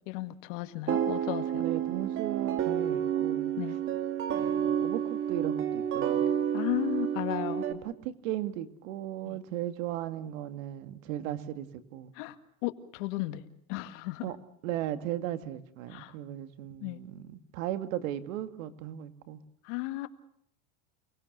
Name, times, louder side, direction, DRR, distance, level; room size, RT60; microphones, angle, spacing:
voice 1, 0.1-1.6 3.5-3.8 6.5-7.7 9.2-9.4 12.2-12.4 12.6-13.4 13.7-14.3 15.9-16.1 16.8-17.0 19.6-20.1, left 17 dB, 60° left, 9 dB, 2.0 m, -34 dB
sound 1, 0.9-7.7, right 9 dB, 30° right, 2.4 m, -30 dB
voice 2, 1.6-3.5 4.3-6.3 7.7-12.1 14.2-14.4 14.6-19.4, right 12 dB, 65° right, 9 dB, 2.3 m, -36 dB
29.5 x 20.0 x 6.7 m, 0.66 s
supercardioid pair, 150°, 42 cm